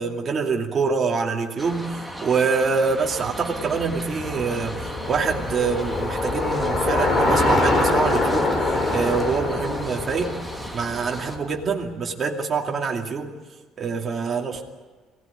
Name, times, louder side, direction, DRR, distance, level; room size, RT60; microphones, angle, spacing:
voice 1, 0.0-10.4 10.7-13.3 13.8-14.6, right 5 dB, 30° right, 0 dB, 2.6 m, -25 dB
sound 1, 1.6-11.4, equal, ahead, 1.6 m, -37 dB
Bicycle, 3.2-11.6, left 2 dB, 25° left, 3.9 m, -24 dB
23.0 x 18.0 x 9.8 m, 1.4 s
cardioid pair, 160°, 0 cm